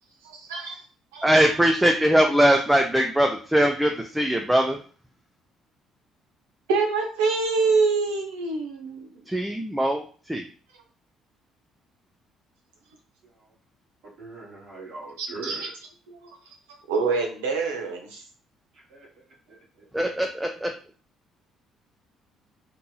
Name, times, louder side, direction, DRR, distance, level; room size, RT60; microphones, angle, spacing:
voice 1, 0.2-0.8 1.1-1.3 6.7-9.2 15.2-15.7 16.1-16.3 16.9-18.2, right 4 dB, 80° right, 1 dB, 0.6 m, -26 dB
voice 2, 1.2-4.8 9.3-10.4 19.9-20.7, equal, 10° right, 3 dB, 0.4 m, -21 dB
voice 3, 14.2-15.6 18.9-19.1 19.5-19.8, right 3 dB, 60° right, -5 dB, 1.3 m, -40 dB
2.9 x 2.6 x 2.3 m, 0.41 s
hypercardioid pair, 50°, 0 cm